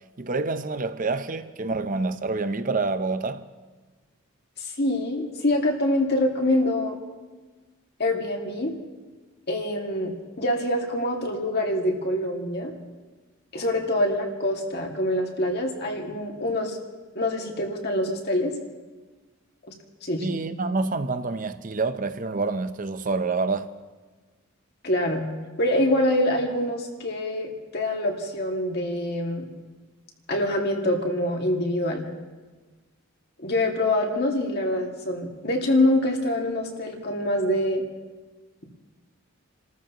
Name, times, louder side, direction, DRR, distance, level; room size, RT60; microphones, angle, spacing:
voice 1, 0.2-3.4 20.2-23.7, right 3 dB, 40° right, 0.7 m, -27 dB
voice 2, 4.6-7.0 8.0-8.7 9.5-12.7 13.5-16.8 17.2-18.6 19.7-19.8 20.0-20.3 24.8-25.3 25.6-29.5 30.3-32.0 33.4-37.8, left 1 dB, 50° left, 2.1 m, -25 dB
30.0 x 14.0 x 3.0 m
head